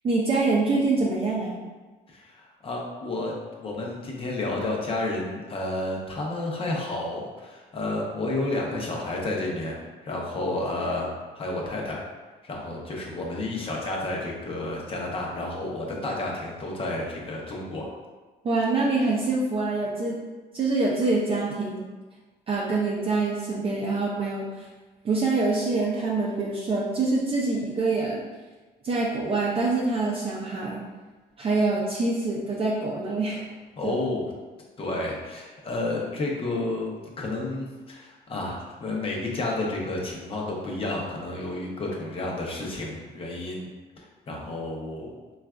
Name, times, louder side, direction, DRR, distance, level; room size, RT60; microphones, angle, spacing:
voice 1, 0.0-1.5 18.4-20.2 20.5-21.8 22.5-24.7 25.0-28.2 28.8-30.8 31.4-33.5 33.8-34.0, right 3 dB, 35° right, -4 dB, 0.5 m, -25 dB
voice 2, 2.1-3.3 3.6-11.1 11.4-12.0 12.4-17.9 33.8-34.3 34.8-43.7 44.0-45.2, left 2 dB, 35° left, -1 dB, 0.7 m, -31 dB
3.9 x 2.3 x 2.2 m, 1.3 s
cardioid pair, 110°, 17 cm